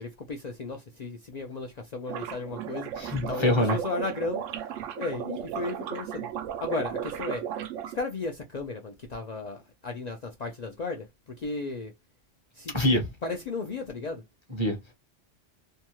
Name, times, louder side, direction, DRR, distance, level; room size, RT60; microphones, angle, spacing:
voice 1, 0.0-2.9 3.3-4.5 5.0-6.3 6.6-7.4 7.9-11.1 11.4-11.9 12.6-12.7 13.2-14.2, left 3 dB, 60° left, 0.4 m, -34 dB
sound 1, 2.1-8.0, right 9 dB, 85° right, 0.9 m, -35 dB
voice 2, 3.0-3.8 12.7-13.1 14.5-14.9, left 1 dB, 25° left, 0.8 m, -25 dB
2.7 x 2.2 x 2.9 m
omnidirectional pair, 1.3 m